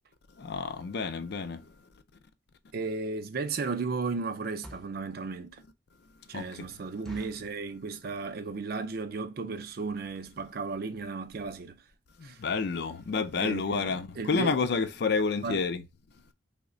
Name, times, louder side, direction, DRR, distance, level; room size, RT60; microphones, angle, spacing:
voice 1, 0.4-1.6 6.3-6.7 12.2-15.8, left 4 dB, 55° left, 0.4 m, -29 dB
voice 2, 2.7-5.6 6.3-11.8 12.2-12.4 13.4-14.6 15.4-15.6, right 4 dB, 50° right, 0.4 m, -35 dB
sound 1, 4.6-5.0 5.6-5.7 6.0-6.1 6.4-6.5 7.0-7.6 8.1-8.4 8.7-8.8 9.0-9.3 9.8-9.9 10.1-10.3 10.7-10.8 11.0-11.1, equal, ahead, 0.5 m, -48 dB
3.1 x 2.1 x 3.7 m
head